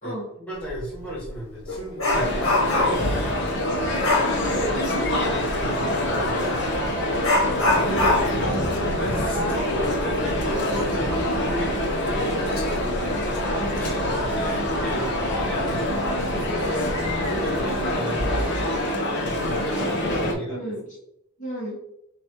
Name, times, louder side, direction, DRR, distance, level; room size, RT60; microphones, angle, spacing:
voice 1, 0.0-3.6 5.3-5.9 7.7-8.1 8.5-12.5 13.6-14.0 14.4-18.8 19.2-19.8 20.2-20.7, equal, 5° left, -8 dB, 1.6 m, -34 dB
Dog, 0.7-0.8 1.2-3.2 4.0-4.4 6.3-6.5 7.2-10.5 10.8-10.9 11.5-11.6 12.2-12.6 13.0-13.2, left 2 dB, 70° left, 1.3 m, -24 dB
Male speech man speaking, 2.1-20.3, left 1 dB, 50° left, 0.9 m, -25 dB
sound 1, 4.0-17.9, equal, 35° right, 0.5 m, -37 dB
voice 2, 4.4-4.7 19.7-20.9 21.4-21.8, right 1 dB, 35° left, -6 dB, 1.2 m, -34 dB
5.8 x 2.4 x 3.1 m, 0.79 s
head